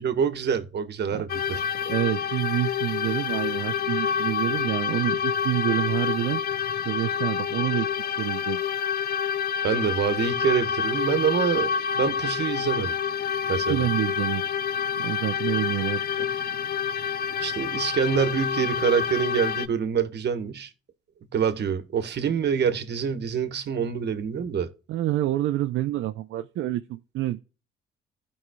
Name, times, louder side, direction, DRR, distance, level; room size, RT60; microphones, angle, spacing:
voice 1, 0.0-1.6 9.6-12.9 13.5-13.9 17.4-20.7 21.3-24.7, right 7 dB, 60° right, 1.3 m, -26 dB
sound 1, 1.3-19.7, left 7 dB, 50° left, 0.5 m, -28 dB
voice 2, 1.9-6.4 6.9-8.6 13.7-14.4 15.0-16.3 24.9-27.4, right 14 dB, 80° right, 0.5 m, -27 dB
15.5 x 5.4 x 2.3 m
cardioid pair, 90°, 20 cm